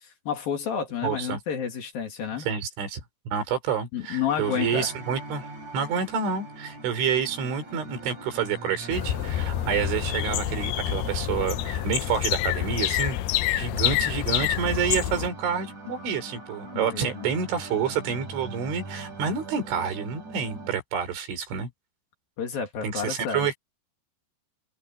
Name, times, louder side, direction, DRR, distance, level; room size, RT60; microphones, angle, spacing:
voice 1, 0.0-2.5 3.9-4.9 16.7-17.3 22.4-23.5, left 7 dB, 55° left, 3.8 m, -30 dB
voice 2, 1.0-1.4 2.4-5.5 5.7-13.2 13.6-21.7 22.8-23.5, right 7 dB, 80° right, 6.5 m, -28 dB
sound 1, 4.3-20.8, right 2 dB, 40° right, 8.2 m, -42 dB
sound 2, 8.9-15.3, left 14 dB, 80° left, 2.3 m, -27 dB
open air
omnidirectional pair, 5.4 m